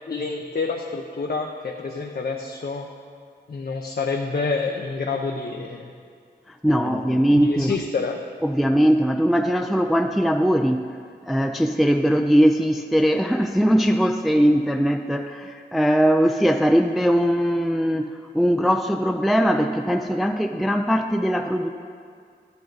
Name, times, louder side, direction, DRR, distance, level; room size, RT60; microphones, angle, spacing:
voice 1, 0.0-2.9 3.5-5.9 6.7-8.2, left 4 dB, 60° left, 1 dB, 0.6 m, -28 dB
voice 2, 6.5-7.7 8.4-10.8 11.3-21.7, equal, ahead, 5 dB, 0.3 m, -20 dB
11.5 x 8.6 x 4.0 m, 2.2 s
wide cardioid pair, 70°, 18 cm